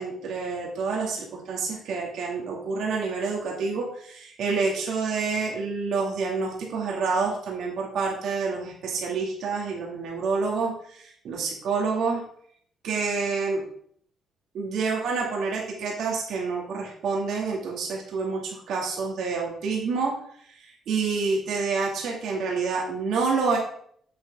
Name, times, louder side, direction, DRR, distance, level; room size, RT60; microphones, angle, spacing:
voice 1, 0.0-12.2 12.8-13.6 14.5-20.1 20.6-23.6, right 4 dB, 75° right, -1 dB, 2.3 m, -28 dB
8.1 x 7.5 x 3.7 m, 0.62 s
cardioid pair, 90°, 0 cm